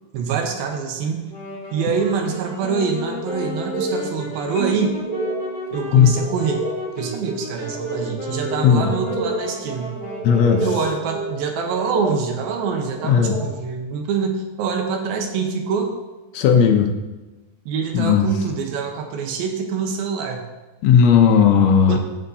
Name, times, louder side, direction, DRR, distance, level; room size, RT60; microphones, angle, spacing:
voice 1, 0.1-1.3 1.7-5.0 5.7-6.7 7.0-10.0 10.6-15.9 17.7-20.4 21.9-22.0, right 6 dB, 85° right, 3 dB, 2.8 m, -25 dB
Wind instrument woodwind instrument, 1.2-10.9, left 3 dB, 25° left, 1.9 m, -34 dB
sound 1, 3.1-13.5, right 2 dB, 50° right, 2.2 m, -31 dB
Marimba xylophone, 4.6-6.7, right 4 dB, 55° left, 3.8 m, -35 dB
voice 2, 10.2-10.6 13.0-13.4 16.3-16.9 17.9-18.2 20.8-22.0, left 7 dB, 85° left, 3 dB, 1.5 m, -15 dB
15.5 x 6.4 x 2.7 m, 1.1 s
omnidirectional pair, 4.1 m